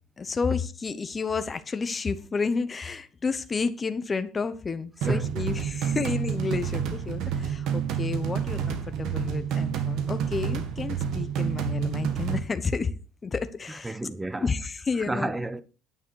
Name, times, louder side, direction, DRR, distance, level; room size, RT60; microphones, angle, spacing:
voice 1, 0.2-12.9 13.2-14.0 14.4-15.3, left 4 dB, 20° left, 0.9 m, -31 dB
voice 2, 5.0-5.4 5.8-6.2 7.3-7.4 13.7-14.5 15.0-15.6, right 2 dB, 10° right, 0.7 m, -32 dB
sound 1, 5.0-12.4, right 8 dB, 70° right, 1.8 m, -29 dB
9.8 x 8.8 x 4.7 m
cardioid pair, 150°, 0 cm